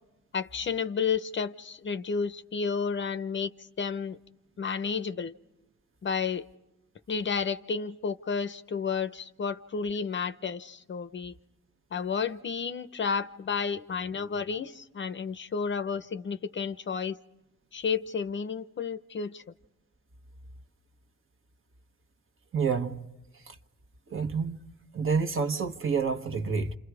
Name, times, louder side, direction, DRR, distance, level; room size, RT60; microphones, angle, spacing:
voice 1, 0.3-4.2 4.6-5.3 6.0-6.4 7.1-11.4 11.9-17.2 17.7-19.4, left 6 dB, 40° left, 0.8 m, -31 dB
voice 2, 22.5-23.0 23.5-23.6 24.1-24.6 24.9-26.8, right 5 dB, 45° right, 1.3 m, -28 dB
28.5 x 27.0 x 4.9 m
cardioid pair, 90°, 30 cm